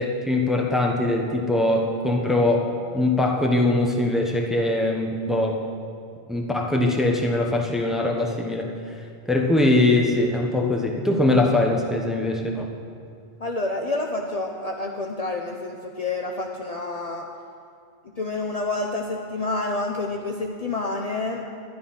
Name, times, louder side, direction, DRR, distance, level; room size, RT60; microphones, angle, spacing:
voice 1, 0.0-2.7 2.9-5.6 6.3-8.7 9.3-12.7, left 2 dB, ahead, 1 dB, 1.0 m, -22 dB
voice 2, 13.4-17.3 18.2-21.4, left 2 dB, 40° left, 1 dB, 0.7 m, -28 dB
11.5 x 11.0 x 5.7 m, 2.3 s
omnidirectional pair, 1.1 m